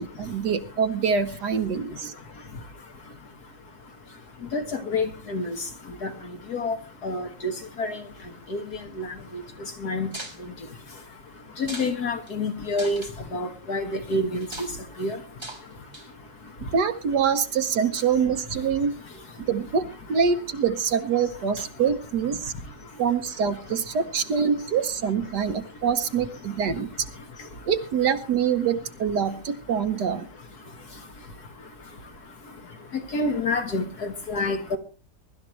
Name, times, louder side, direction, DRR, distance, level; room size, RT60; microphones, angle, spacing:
voice 1, 0.0-2.1 16.7-18.9 19.5-22.5 23.0-26.9 27.7-30.3, right 6 dB, 65° right, 1.5 m, -25 dB
voice 2, 4.5-5.6 6.0-6.1 6.5-6.8 7.0-7.5 7.8-8.0 8.5-8.6 9.0-9.1 9.8-10.1 11.6-13.0 13.3-14.5 15.0-15.2 33.1-34.8, left 2 dB, 60° left, 1.9 m, -27 dB
sound 1, 10.1-10.4 11.6-11.9 12.3-12.4 12.7-13.1 14.4-14.7 15.4-15.6 15.9-16.2, right 1 dB, 15° right, 3.4 m, -38 dB
23.0 x 12.5 x 3.1 m
omnidirectional pair, 2.0 m